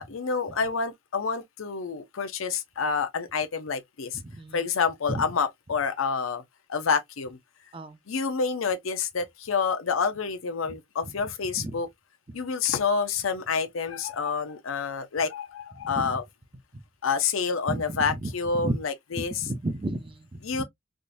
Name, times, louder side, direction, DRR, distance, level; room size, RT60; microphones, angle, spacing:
voice 1, 0.0-4.2 4.5-6.4 6.7-7.4 8.1-11.9 12.3-16.2 17.0-19.4 20.4-20.6, left 5 dB, 85° left, 0.6 m, -28 dB
voice 2, 4.2-4.6 5.1-5.3 7.7-8.0 10.7-10.8 11.2-11.8 15.8-16.2 17.7-18.8 19.1-20.6, right 2 dB, 25° right, 0.5 m, -33 dB
3.6 x 2.5 x 2.5 m
head